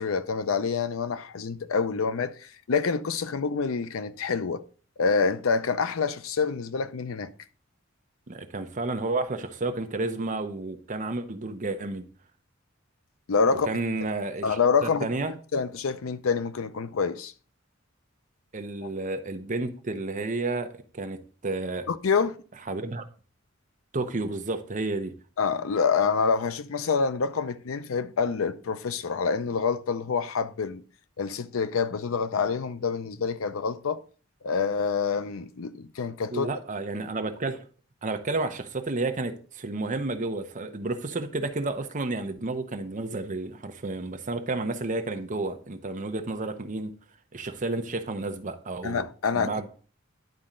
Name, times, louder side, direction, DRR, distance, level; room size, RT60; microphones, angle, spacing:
voice 1, 0.0-4.6 5.0-7.3 13.3-13.7 14.4-17.3 18.8-18.9 21.9-22.4 25.4-30.8 31.2-34.0 34.4-36.5 48.8-49.6, left 5 dB, 85° left, 0.5 m, -27 dB
voice 2, 8.3-12.1 13.6-15.3 18.5-21.9 22.7-23.0 23.9-25.1 36.3-37.7 38.0-46.9 47.3-49.0 49.3-49.7, right 2 dB, 40° right, 0.8 m, -31 dB
10.5 x 4.2 x 3.7 m
head